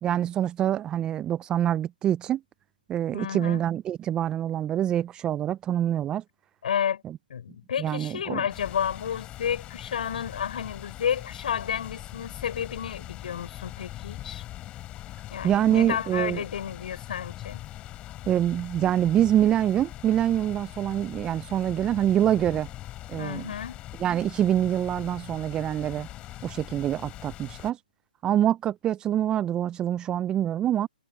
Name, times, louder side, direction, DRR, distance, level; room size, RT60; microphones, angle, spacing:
voice 1, 0.0-2.4 2.9-6.2 7.8-8.4 15.4-16.4 18.3-22.7 23.1-23.5 24.0-26.1 26.4-27.8 28.2-30.9, right 11 dB, 15° right, 0.5 m, -25 dB
voice 2, 3.1-3.6 6.6-7.0 7.3-14.4 15.3-17.6 23.2-23.8, left 8 dB, 60° left, 5.5 m, -31 dB
sound 1, 8.5-27.7, left 14 dB, 20° left, 3.1 m, -42 dB
hypercardioid pair, 135°, 5 cm